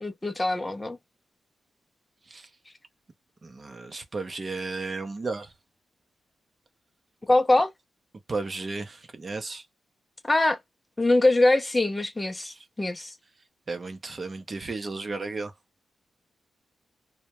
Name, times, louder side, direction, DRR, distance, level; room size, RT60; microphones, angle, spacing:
voice 1, 0.0-1.0 7.3-7.7 10.3-10.6 11.0-13.1, left 2 dB, 15° left, 0.4 m, -23 dB
voice 2, 3.4-5.5 8.3-9.6 12.4-12.7 13.7-15.5, right 3 dB, 40° right, 0.6 m, -34 dB
2.1 x 2.1 x 2.9 m
cardioid pair, 85°, 0 cm